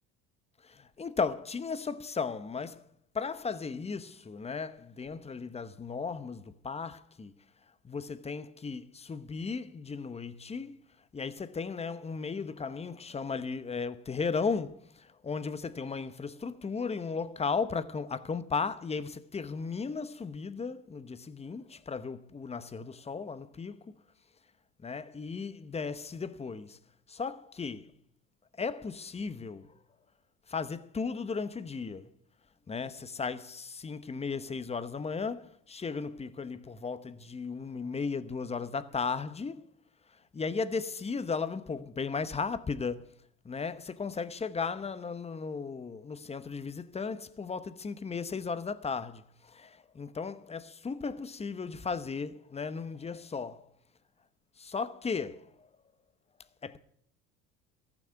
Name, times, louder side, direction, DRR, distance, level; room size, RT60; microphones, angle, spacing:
voice 1, 0.6-2.8 3.1-7.3 7.8-10.8 11.1-23.9 24.8-26.8 27.1-27.9 28.6-29.7 30.5-32.1 32.7-39.6 40.3-43.1 43.4-53.7 54.6-55.5 56.6-56.8, left 5 dB, 20° left, 0.9 m, -35 dB
14.0 x 6.1 x 9.9 m
supercardioid pair, 90°, 31 cm